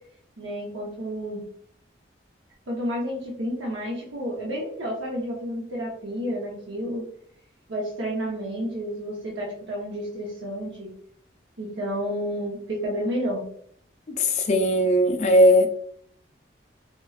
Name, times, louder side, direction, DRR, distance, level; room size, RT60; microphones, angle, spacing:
voice 1, 0.4-1.4 2.7-7.1 7.7-10.9 11.6-13.5, equal, 85° right, 0.7 m, -30 dB
voice 2, 14.2-15.7, equal, 35° left, 0.4 m, -18 dB
4.2 x 2.2 x 2.3 m
head